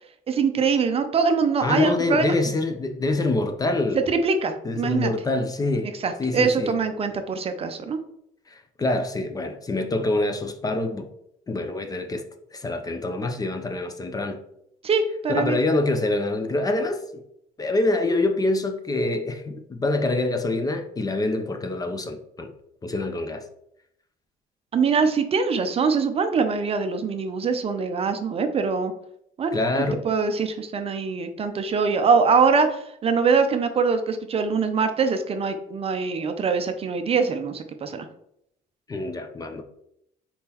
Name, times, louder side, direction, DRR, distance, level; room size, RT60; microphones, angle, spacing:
voice 1, 0.3-2.3 4.1-5.1 6.0-8.0 14.8-15.6 24.7-28.9 29.4-29.5 30.0-38.1, right 5 dB, 35° right, 8 dB, 0.4 m, -23 dB
voice 2, 1.6-4.0 4.6-5.9 6.2-6.7 8.5-11.1 11.5-12.2 12.5-14.4 15.3-17.0 17.6-22.5 22.8-23.4 29.5-30.0 38.9-39.6, left 2 dB, 20° left, 7 dB, 0.5 m, -25 dB
4.2 x 3.6 x 2.9 m, 0.75 s
cardioid pair, 110°, 17 cm